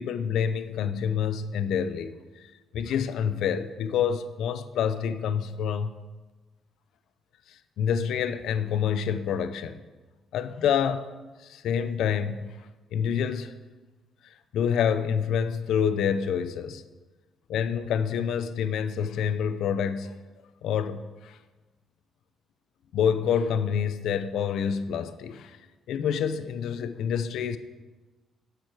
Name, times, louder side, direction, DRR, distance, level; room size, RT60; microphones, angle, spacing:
voice 1, 0.0-2.5 2.7-5.9 7.8-9.8 10.3-11.1 11.4-12.5 12.9-13.6 14.5-16.8 17.5-20.2 20.6-21.4 22.9-25.6 25.9-27.6, left 7 dB, 80° left, 13 dB, 0.5 m, -27 dB
9.2 x 7.8 x 4.7 m, 1.3 s
cardioid pair, 90°, 0 cm